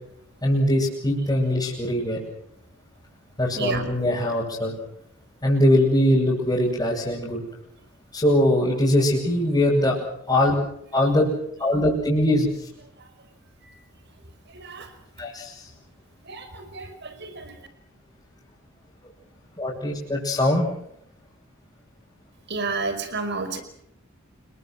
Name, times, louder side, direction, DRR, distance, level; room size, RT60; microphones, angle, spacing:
voice 1, 0.4-2.2 3.4-4.7 5.4-7.4 8.1-10.0 10.3-10.6 10.9-11.3 11.6-12.5 15.2-15.6 19.6-20.7, left 1 dB, 20° left, -7 dB, 7.6 m, -21 dB
voice 2, 3.6-3.9 14.5-14.9 16.2-17.5 22.5-23.6, right 3 dB, 55° right, 9 dB, 5.2 m, -31 dB
29.0 x 23.0 x 6.1 m, 0.76 s
head